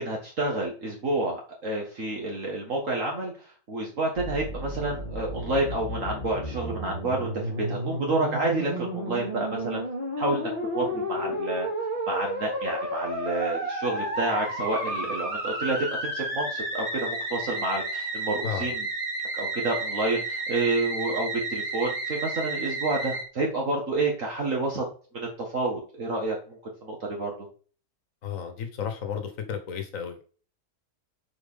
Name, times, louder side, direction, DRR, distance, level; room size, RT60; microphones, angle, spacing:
voice 1, 0.0-9.8 10.2-11.7 12.1-18.9 19.3-24.8 25.1-27.3, right 2 dB, 55° right, 0 dB, 2.0 m, -29 dB
Musical instrument, 4.2-23.2, right 1 dB, 35° right, 2.7 m, -32 dB
voice 2, 28.2-30.2, left 7 dB, 60° left, 6 dB, 1.7 m, -33 dB
7.6 x 4.6 x 5.6 m, 0.39 s
omnidirectional pair, 1.6 m